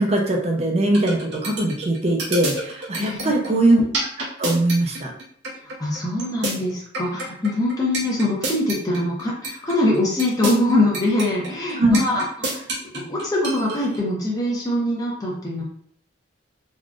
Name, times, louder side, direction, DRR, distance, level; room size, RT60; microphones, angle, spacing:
voice 1, 0.0-3.8 4.4-5.1 11.8-12.0, right 1 dB, 35° right, 1 dB, 0.5 m, -20 dB
sound 1, 0.9-14.0, right 2 dB, 65° right, 0.8 m, -28 dB
voice 2, 3.0-3.5 5.6-15.6, left 1 dB, 20° left, -4 dB, 0.7 m, -23 dB
3.6 x 2.4 x 2.4 m, 0.63 s
head